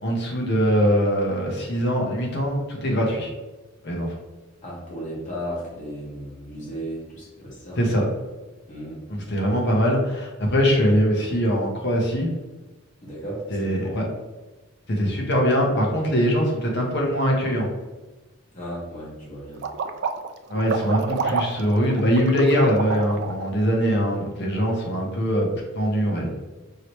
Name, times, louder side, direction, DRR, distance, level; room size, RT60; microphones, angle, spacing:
voice 1, 0.0-3.3 3.8-4.1 7.8-8.0 9.1-12.3 13.5-14.0 14.9-17.7 20.5-26.3, equal, 50° left, 0 dB, 0.9 m, -22 dB
voice 2, 4.6-7.8 8.7-9.0 13.0-13.9 18.5-19.6, equal, 35° left, -6 dB, 1.5 m, -35 dB
sound 1, 19.6-23.4, right 5 dB, 50° right, 0.3 m, -28 dB
4.8 x 3.1 x 3.0 m, 1.1 s
head